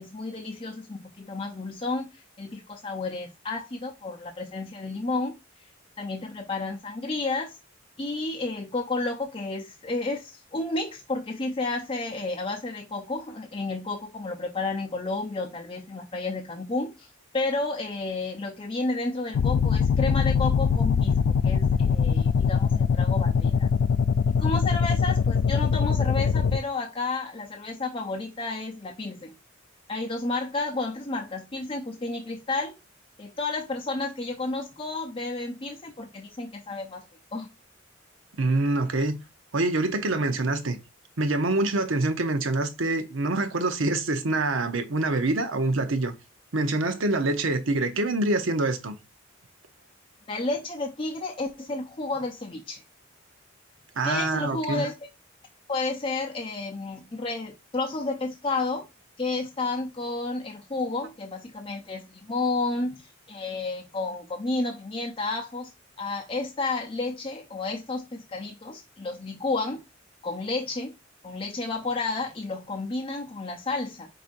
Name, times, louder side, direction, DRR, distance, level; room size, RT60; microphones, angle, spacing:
voice 1, 0.0-2.1 2.4-5.3 6.0-7.6 8.0-23.7 24.3-29.3 29.9-32.8 33.2-37.0 37.3-37.5 50.3-52.8 54.0-54.9 55.7-58.8 59.2-65.7 66.0-69.8 70.2-70.9 71.2-74.1, left 3 dB, 25° left, 0.6 m, -31 dB
sound 1, 19.3-26.6, left 6 dB, 70° left, 0.3 m, -22 dB
voice 2, 38.4-39.2 39.5-40.8 41.2-46.1 46.5-48.9 54.0-54.8, right 2 dB, 75° right, 0.8 m, -25 dB
5.0 x 4.2 x 2.5 m
head